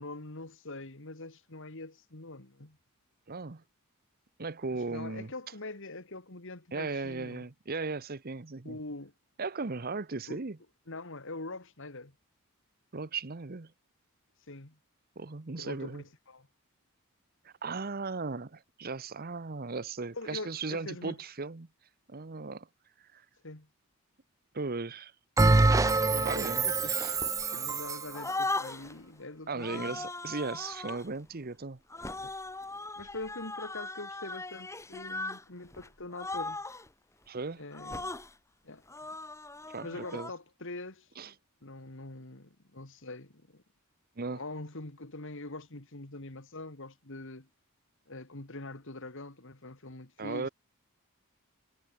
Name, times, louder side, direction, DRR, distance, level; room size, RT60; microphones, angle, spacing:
voice 1, 0.0-2.8 4.7-7.4 8.6-9.1 10.3-10.4 10.9-12.1 14.5-14.8 15.6-16.5 20.1-21.2 23.4-23.7 26.0-30.1 32.2-32.3 33.0-36.6 37.6-38.1 38.6-38.8 39.8-41.3 41.6-43.6 44.2-47.5 48.1-50.5, left 2 dB, 60° left, 2.3 m, -44 dB
voice 2, 3.3-3.6 4.4-5.3 6.7-8.8 9.4-10.6 12.9-13.7 15.2-16.0 17.4-21.7 22.1-22.7 23.1-23.2 24.5-25.1 26.2-27.1 29.5-31.8 37.3-37.6 39.7-40.3 41.2-41.3 44.2-44.4 50.2-50.5, right 4 dB, 45° right, 0.9 m, -37 dB
Bell, 25.4-28.2, right 3 dB, 15° right, 0.4 m, -25 dB
sound 1, 27.1-27.8 28.1-29.0 29.6-31.1 31.9-35.4 35.7-35.9 36.1-36.9 37.7-38.3 38.9-40.3, left 2 dB, 15° left, 2.1 m, -38 dB
head